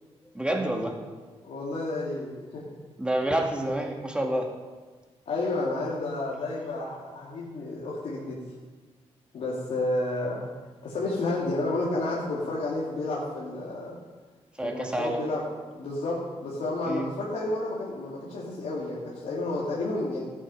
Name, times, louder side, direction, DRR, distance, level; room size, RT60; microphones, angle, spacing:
voice 1, 0.3-1.0 3.0-4.5 14.6-15.2 16.9-17.1, right 1 dB, 10° right, 1 dB, 2.1 m, -28 dB
voice 2, 1.4-2.6 5.3-8.4 9.3-10.4 10.8-13.9 14.6-15.4 15.7-20.2, left 2 dB, 80° left, -7 dB, 2.5 m, -31 dB
14.5 x 8.4 x 5.5 m, 1.3 s
cardioid pair, 95°, 11 cm